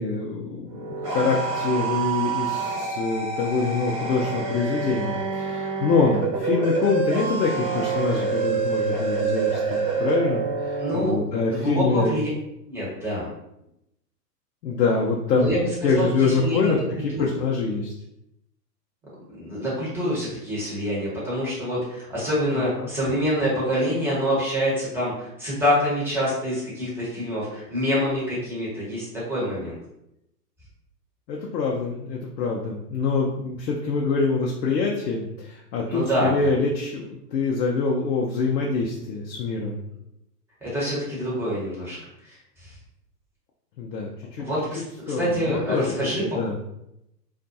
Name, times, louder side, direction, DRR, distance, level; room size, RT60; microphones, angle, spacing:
voice 1, 0.0-12.2 14.6-15.5 15.8-16.8 17.0-17.9 22.5-22.9 31.3-39.8 43.8-44.5 45.1-45.9 46.2-46.6, left 4 dB, 85° left, -2 dB, 0.6 m, -25 dB
sound 1, 0.7-11.1, right 5 dB, 40° right, 0.9 m, -27 dB
voice 2, 10.8-11.2 11.6-12.3 12.7-13.3 15.3-16.8 17.1-17.4 19.4-29.7 35.9-36.5 40.6-42.0 42.2-42.7 44.4-46.4, equal, 5° right, -8 dB, 1.0 m, -26 dB
2.5 x 2.3 x 2.6 m, 0.82 s
hypercardioid pair, 125°, 50 cm